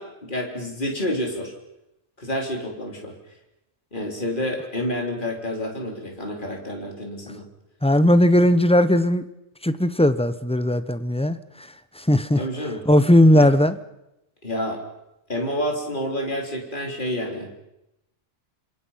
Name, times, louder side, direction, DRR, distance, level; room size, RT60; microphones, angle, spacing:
voice 1, 0.0-1.5 2.2-3.2 3.9-7.5 12.4-12.8 13.4-13.5 14.4-14.8 15.3-17.6, left 1 dB, 40° left, 1 dB, 3.9 m, -29 dB
voice 2, 7.8-9.3 9.6-11.7 12.0-12.4 12.9-13.8, left 1 dB, 5° left, 12 dB, 0.8 m, -18 dB
27.0 x 26.5 x 5.8 m, 0.89 s
omnidirectional pair, 1.3 m